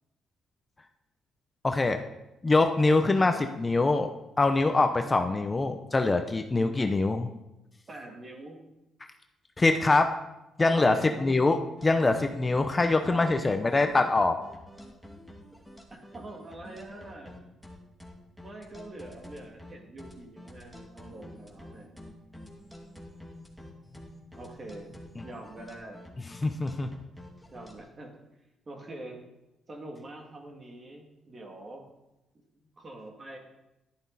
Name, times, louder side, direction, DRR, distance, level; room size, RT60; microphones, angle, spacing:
voice 1, 1.6-2.0 2.4-4.1 4.4-7.3 9.6-10.1 10.6-14.4 26.4-26.9, left 3 dB, 25° left, 7 dB, 0.8 m, -24 dB
voice 2, 4.5-4.8 6.0-6.4 7.9-8.6 10.6-11.1 12.9-13.7 15.9-17.4 18.4-21.9 24.3-24.9 25.2-26.0 27.5-28.1 28.7-29.2 29.7-31.8 32.5-33.4, right 2 dB, 35° right, 1 dB, 2.7 m, -45 dB
sound 1, 11.8-27.7, left 1 dB, ahead, 2.4 m, -48 dB
11.5 x 10.5 x 4.2 m, 0.94 s
cardioid pair, 90°, 0 cm